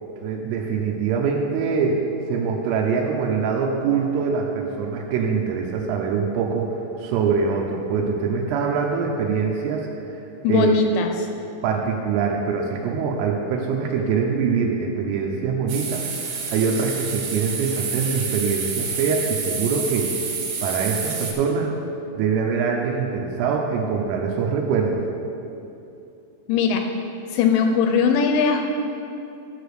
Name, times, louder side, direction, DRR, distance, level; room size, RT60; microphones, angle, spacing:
voice 1, 0.2-2.0 2.3-6.7 7.0-9.9 10.5-10.8 11.6-20.1 20.6-21.7 22.1-25.0, right 5 dB, 85° right, 0 dB, 3.3 m, -23 dB
voice 2, 10.4-11.1 26.5-26.8 27.3-28.7, left 5 dB, 85° left, 4 dB, 2.7 m, -19 dB
sound 1, 15.7-21.3, right 5 dB, 70° right, 3.5 m, -29 dB
13.0 x 5.1 x 6.5 m, 2.8 s
omnidirectional pair, 5.7 m